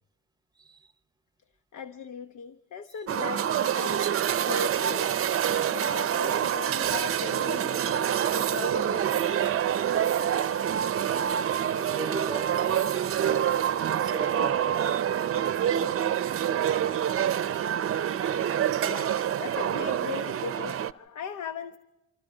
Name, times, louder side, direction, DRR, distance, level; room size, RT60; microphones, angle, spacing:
voice 1, 0.6-0.9 3.0-3.1 11.8-13.6 13.9-15.1 15.6-16.1 16.4-17.0, right 2 dB, 15° right, 1.0 m, -40 dB
voice 2, 1.7-5.2 5.5-9.6 17.3-18.2 18.6-21.8, left 6 dB, 70° left, 1.1 m, -39 dB
sound 1, 3.1-20.9, right 9 dB, 50° right, 0.7 m, -26 dB
28.0 x 26.0 x 3.9 m
cardioid pair, 90°, 30 cm